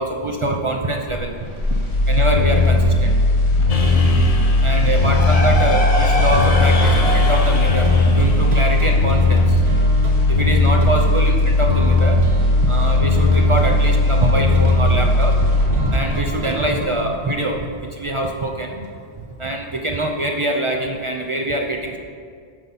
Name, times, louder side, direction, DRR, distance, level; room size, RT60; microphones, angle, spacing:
voice 1, 0.0-1.3 2.1-3.1 3.5-3.7 4.0-4.2 4.6-9.6 10.3-12.2 12.6-15.4 15.9-17.6 17.9-18.9 19.4-22.0, right 1 dB, 40° right, 2 dB, 0.5 m, -24 dB
sound 1, 1.1-17.2 17.5-17.6, left 2 dB, 90° left, 1.7 m, -17 dB
sound 2, 3.7-9.7, left 2 dB, 40° left, 0.8 m, -26 dB
sound 3, 6.6-18.9, right 1 dB, 75° right, 1.2 m, -33 dB
10.5 x 5.7 x 4.1 m, 2.1 s
omnidirectional pair, 1.1 m